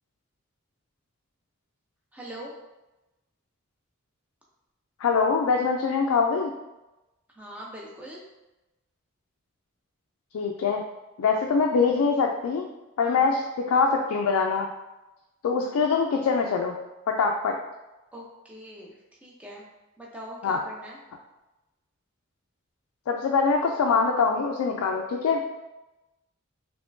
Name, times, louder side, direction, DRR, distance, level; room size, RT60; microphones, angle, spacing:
voice 1, 2.1-2.5 7.4-8.2 13.0-13.3 18.1-19.6 20.0-21.0, equal, 5° right, -4 dB, 0.6 m, -42 dB
voice 2, 5.0-6.5 10.3-10.8 11.2-12.7 13.0-14.7 15.4-16.8 17.1-17.5 20.4-20.6 23.1-25.4, left 5 dB, 80° left, 1 dB, 0.3 m, -23 dB
3.5 x 3.0 x 2.6 m, 1.0 s
head